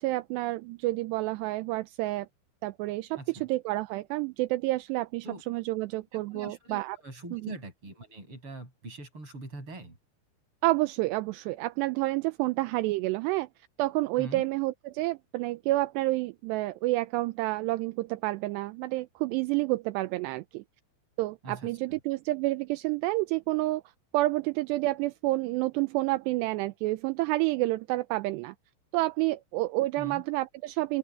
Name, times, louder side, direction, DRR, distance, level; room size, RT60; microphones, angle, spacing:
voice 1, 0.0-2.3 2.6-7.0 7.3-7.5 10.6-13.5 13.8-20.6 21.2-23.8 24.1-28.5 28.9-31.0, right 19 dB, 80° right, 2.6 m, -29 dB
voice 2, 6.1-10.0 14.2-14.5 21.4-22.0 30.0-30.2, right 2 dB, 25° right, 7.3 m, -43 dB
open air
omnidirectional pair, 5.4 m